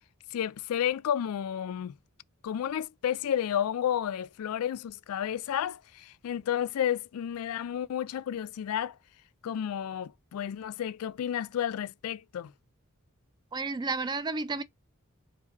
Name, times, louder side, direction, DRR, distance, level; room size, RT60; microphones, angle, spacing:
voice 1, 0.3-1.9 2.4-9.0 9.4-12.5, left 9 dB, 80° left, 0.3 m, -31 dB
voice 2, 13.5-14.6, right 3 dB, 20° right, 0.3 m, -31 dB
4.8 x 2.6 x 4.0 m
head